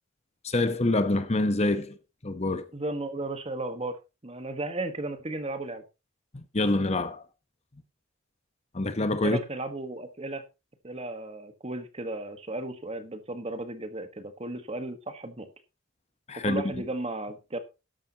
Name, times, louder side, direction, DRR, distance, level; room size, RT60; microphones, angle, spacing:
voice 1, 0.4-2.0 2.2-2.6 6.3-7.2 8.7-9.4 16.3-16.6, left 2 dB, 35° left, 1.0 m, -26 dB
voice 2, 2.7-5.8 9.2-10.4 10.8-15.5 16.4-17.6, right 2 dB, 30° right, 1.4 m, -35 dB
13.0 x 10.5 x 2.9 m
head